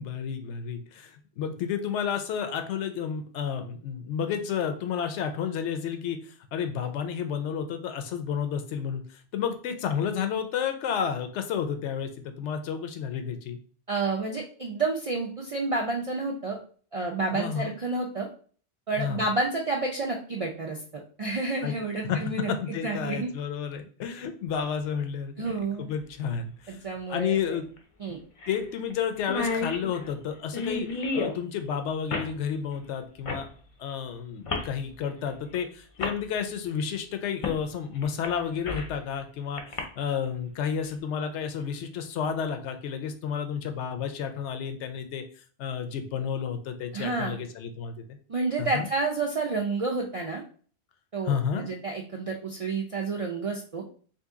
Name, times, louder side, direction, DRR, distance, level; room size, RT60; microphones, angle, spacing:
voice 1, 0.0-13.6 17.3-17.7 19.0-19.2 21.6-21.7 22.0-25.5 25.8-26.8 27.1-27.6 28.5-33.5 33.8-45.3 45.6-48.2 48.6-48.9 51.2-51.7, left 7 dB, 85° left, 7 dB, 0.9 m, -31 dB
voice 2, 13.9-16.6 16.9-18.3 18.9-20.8 21.2-22.5 22.8-23.3 25.4-25.9 26.7-27.4 28.0-28.2 46.9-47.4 48.3-50.4 51.1-53.8, right 3 dB, 60° right, 0 dB, 0.3 m, -29 dB
sound 1, 25.5-25.6 27.3-27.4 27.8-27.9 28.4-28.6 28.9-29.0 29.2-31.4 32.1-32.3 33.2-33.5 34.5-34.7 35.5-35.6 36.0-36.2 37.4-37.6 38.0-39.0 39.6-39.8, left 3 dB, 45° left, 0.4 m, -31 dB
2.8 x 2.6 x 3.6 m, 0.43 s
omnidirectional pair, 1.2 m